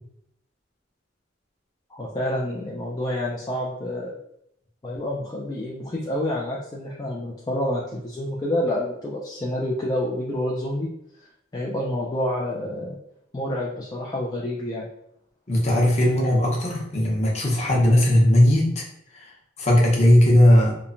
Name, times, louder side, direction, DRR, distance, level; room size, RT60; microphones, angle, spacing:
voice 1, 1.9-4.1 4.8-10.9 11.2-13.0 13.3-14.9, left 1 dB, 20° left, -4 dB, 0.3 m, -28 dB
voice 2, 15.5-18.8 19.1-19.3 19.6-20.7, left 1 dB, 35° left, -3 dB, 0.7 m, -18 dB
2.9 x 2.0 x 2.5 m, 0.74 s
head